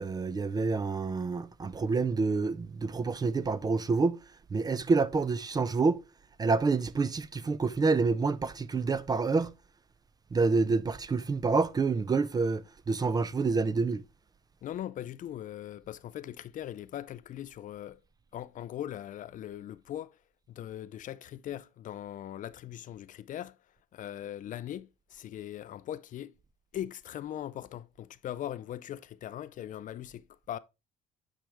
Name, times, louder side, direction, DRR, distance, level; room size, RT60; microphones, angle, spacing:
voice 1, 0.0-4.2 4.5-6.0 6.4-9.5 10.3-14.0, right 4 dB, 25° right, 0.4 m, -28 dB
voice 2, 14.6-18.0 18.3-20.2 20.5-23.6 23.9-26.4 26.7-30.6, left 11 dB, 50° left, 0.4 m, -40 dB
9.1 x 4.9 x 3.4 m
cardioid pair, 110°, 17 cm